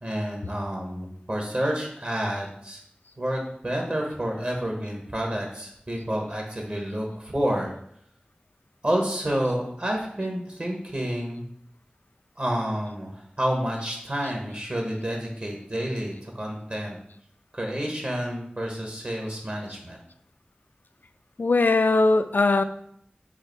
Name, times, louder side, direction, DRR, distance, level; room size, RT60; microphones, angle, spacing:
voice 1, 0.0-2.8 3.2-7.7 8.8-11.4 12.4-17.0 17.5-20.0, equal, 45° right, 0 dB, 1.0 m, -29 dB
voice 2, 21.4-22.6, left 3 dB, 70° left, 10 dB, 0.3 m, -20 dB
4.8 x 2.5 x 4.5 m, 0.70 s
wide cardioid pair, 40°, 3 cm